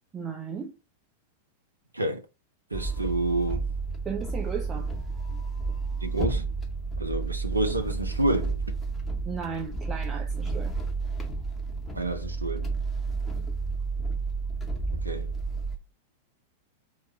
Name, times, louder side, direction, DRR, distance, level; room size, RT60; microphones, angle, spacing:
voice 1, 0.1-0.7 4.0-4.9 9.2-10.7, right 6 dB, 20° right, 0.7 m, -35 dB
sound 1, 2.7-15.8, right 4 dB, 10° left, 0.9 m, -31 dB
voice 2, 2.7-3.7 6.0-6.4 7.0-8.6 11.9-12.7 14.9-15.3, right 2 dB, 80° right, 0.4 m, -29 dB
4.5 x 2.3 x 4.1 m
figure-of-eight pair, 90°, 0 cm